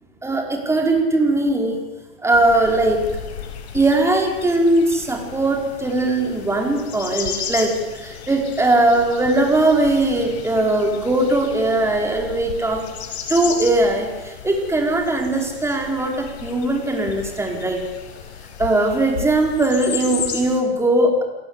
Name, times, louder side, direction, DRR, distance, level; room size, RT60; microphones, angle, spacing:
voice 1, 0.2-1.8 2.2-3.0 3.7-12.9 13.3-17.8 18.6-21.2, right 2 dB, 10° right, 2 dB, 4.9 m, -19 dB
sound 1, 2.3-20.6, left 7 dB, 70° left, 5.0 m, -34 dB
28.0 x 17.0 x 8.3 m, 1.2 s
hypercardioid pair, 115°, 34 cm